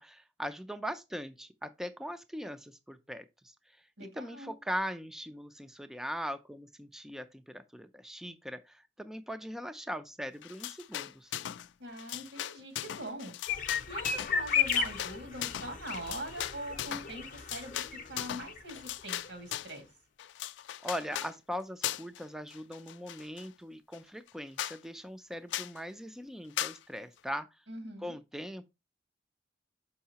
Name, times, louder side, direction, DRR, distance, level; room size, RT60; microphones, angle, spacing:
voice 1, 0.0-3.5 4.0-11.4 20.8-27.5 28.0-28.7, equal, ahead, 0.3 m, -40 dB
voice 2, 4.0-4.6 11.8-13.3 13.9-17.8 18.1-19.9 27.7-28.1, right 1 dB, 85° right, 2.0 m, -42 dB
sound 1, 10.4-11.7 11.9-19.8 20.2-21.3 21.8-22.2 22.5-23.5 23.9-24.0 24.3-24.4 24.6-24.8 25.5-25.8 26.6-26.8, left 12 dB, 80° left, 0.3 m, -38 dB
sound 2, 13.5-18.6 18.9-19.0 19.2-19.3, left 7 dB, 45° left, 0.6 m, -34 dB
6.3 x 5.6 x 2.8 m
head